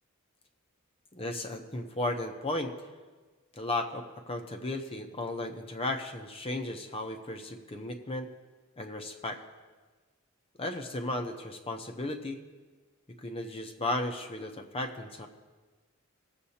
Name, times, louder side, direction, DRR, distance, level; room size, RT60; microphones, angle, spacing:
voice 1, 1.1-2.7 3.6-8.3 8.8-9.4 10.6-12.4 13.2-15.3, left 2 dB, 25° left, 4 dB, 0.8 m, -35 dB
20.0 x 7.5 x 2.8 m, 1.3 s
head